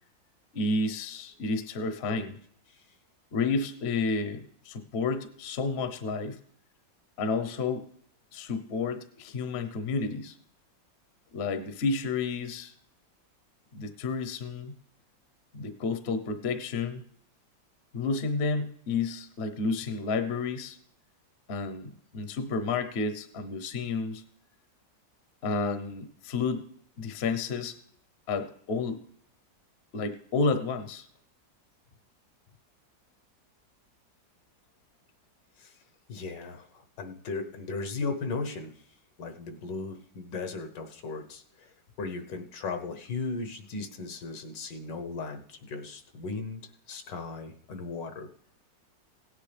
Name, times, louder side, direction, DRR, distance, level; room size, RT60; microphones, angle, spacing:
voice 1, 0.5-2.4 3.3-6.4 7.2-7.8 8.3-10.4 11.3-12.7 13.7-14.7 15.5-17.0 17.9-20.8 21.5-24.2 25.4-26.6 27.0-27.8 28.3-29.0 29.9-31.1, left 4 dB, 45° left, 9 dB, 0.9 m, -31 dB
voice 2, 36.1-38.7 39.2-46.6 46.9-48.3, left 4 dB, 75° left, 6 dB, 1.7 m, -37 dB
17.0 x 9.9 x 3.4 m, 0.64 s
omnidirectional pair, 2.0 m